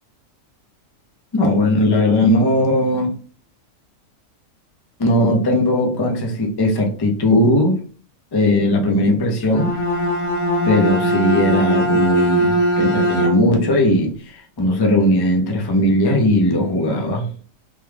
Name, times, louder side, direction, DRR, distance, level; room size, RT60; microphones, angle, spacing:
voice 1, 1.3-3.2 5.0-7.8 8.3-9.8 10.6-17.3, left 1 dB, 30° left, 0.4 m, -18 dB
Bowed string instrument, 9.4-13.7, equal, 50° left, 0.8 m, -20 dB
3.1 x 2.3 x 3.3 m
omnidirectional pair, 1.5 m